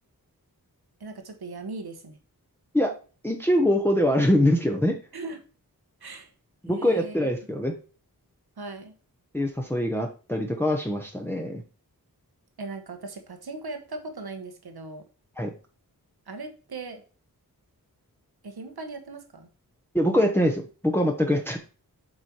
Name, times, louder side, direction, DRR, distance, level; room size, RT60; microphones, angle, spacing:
voice 1, 1.0-2.2 5.1-5.4 6.0-6.3 6.7-7.2 8.6-8.9 12.6-15.0 16.3-17.0 18.4-19.5, right 3 dB, 90° right, 6 dB, 1.3 m, -38 dB
voice 2, 3.2-5.0 6.6-7.7 9.3-11.6 15.4-15.5 19.9-21.6, left 1 dB, 5° left, 2 dB, 1.0 m, -23 dB
7.6 x 4.4 x 4.6 m, 0.36 s
wide cardioid pair, 60°, 37 cm